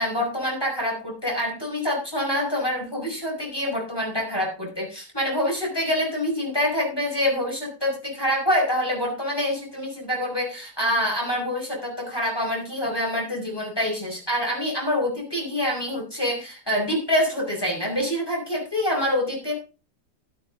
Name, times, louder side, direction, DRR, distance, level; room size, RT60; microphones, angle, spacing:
voice 1, 0.0-19.5, left 1 dB, 15° left, -2 dB, 5.6 m, -26 dB
12.0 x 11.5 x 3.9 m, 0.32 s
omnidirectional pair, 1.7 m